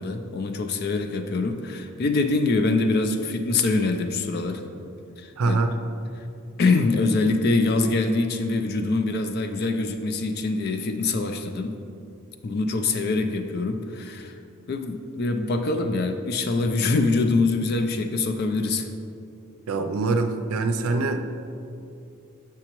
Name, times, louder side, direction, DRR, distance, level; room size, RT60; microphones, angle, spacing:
voice 1, 0.0-4.7 5.2-5.6 6.2-6.3 6.6-11.8 12.4-14.3 14.7-18.9, left 3 dB, 50° left, 6 dB, 0.3 m, -24 dB
voice 2, 5.4-5.8 19.7-21.3, right 3 dB, 85° right, 6 dB, 0.5 m, -24 dB
7.7 x 5.8 x 3.0 m, 2.6 s
head